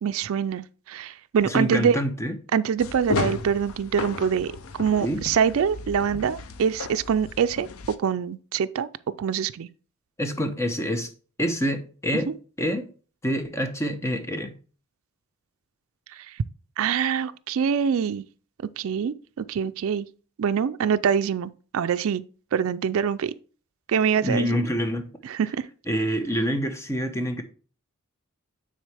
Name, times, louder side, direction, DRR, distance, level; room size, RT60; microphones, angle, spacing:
voice 1, 0.0-2.0 2.5-7.7 8.0-8.9 9.2-9.7 12.3-12.4 16.2-16.3 16.8-18.2 18.8-20.1 20.4-22.2 22.5-23.3 23.9-24.6 25.2-25.7, right 7 dB, 70° right, 0.4 m, -24 dB
voice 2, 1.4-2.3 5.0-5.2 10.2-11.1 11.4-12.3 12.6-12.9 13.2-14.5 24.2-25.1 25.9-27.4, equal, 15° left, 0.7 m, -26 dB
sound 1, 2.8-7.9, left 4 dB, 70° left, 0.5 m, -34 dB
9.3 x 4.1 x 3.4 m
head